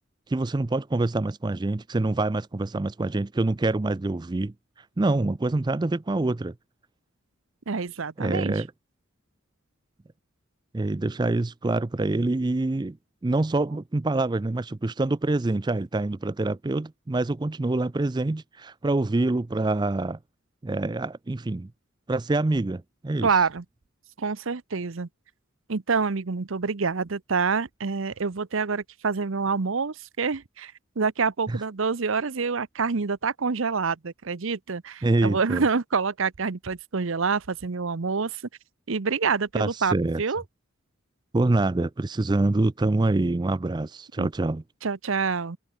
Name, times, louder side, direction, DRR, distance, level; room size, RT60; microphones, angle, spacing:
voice 1, 0.3-4.5 5.0-6.5 8.2-8.7 10.7-13.0 13.2-20.2 20.6-21.7 22.1-23.3 31.5-31.6 35.0-35.6 39.5-40.2 41.3-44.6, right 2 dB, 20° right, 0.4 m, -25 dB
voice 2, 7.7-8.6 23.2-23.6 24.2-25.1 25.7-38.4 38.9-40.4 44.2-44.3 44.8-45.6, right 5 dB, 70° right, 0.8 m, -27 dB
head